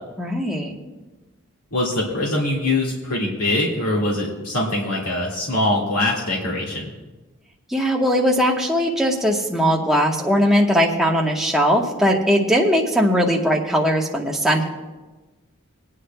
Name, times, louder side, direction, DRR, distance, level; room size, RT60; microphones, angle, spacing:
voice 1, 0.2-0.7 7.7-14.6, equal, ahead, -1 dB, 1.0 m, -19 dB
voice 2, 1.7-6.8, left 1 dB, 85° left, -4 dB, 1.9 m, -23 dB
23.5 x 9.6 x 2.2 m, 1.2 s
head